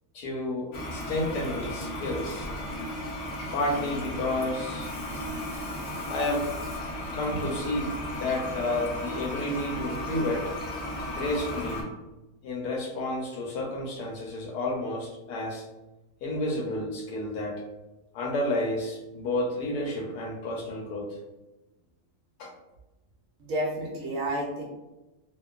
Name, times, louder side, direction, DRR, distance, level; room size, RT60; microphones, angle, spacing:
voice 1, 0.1-2.5 3.5-4.9 6.1-6.5 7.1-10.5 11.1-11.9 12.4-15.7 16.2-17.6 18.1-21.2 22.4-22.5, left 1 dB, 80° left, 0 dB, 1.2 m, -31 dB
Toilet flush, 0.7-11.8, left 1 dB, 60° left, 0.7 m, -35 dB
voice 2, 23.4-24.6, right 1 dB, 70° right, -1 dB, 0.9 m, -30 dB
2.9 x 2.1 x 2.3 m, 1.0 s
omnidirectional pair, 1.7 m